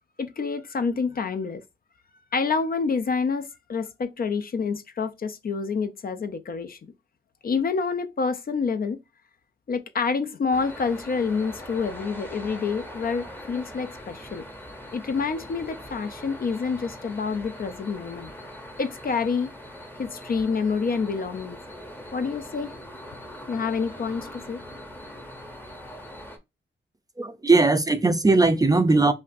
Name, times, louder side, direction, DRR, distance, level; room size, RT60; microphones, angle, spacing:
voice 1, 0.2-1.6 2.3-6.8 7.4-9.0 9.7-14.4 14.9-18.3 18.8-19.5 20.0-21.6 22.1-22.7 23.5-24.6, left 5 dB, 50° left, 0.5 m, -28 dB
sound 1, 10.5-26.4, equal, 10° left, 0.7 m, -42 dB
voice 2, 27.2-29.1, right 3 dB, 20° right, 0.4 m, -19 dB
5.3 x 2.4 x 2.5 m
wide cardioid pair, 120°, 20 cm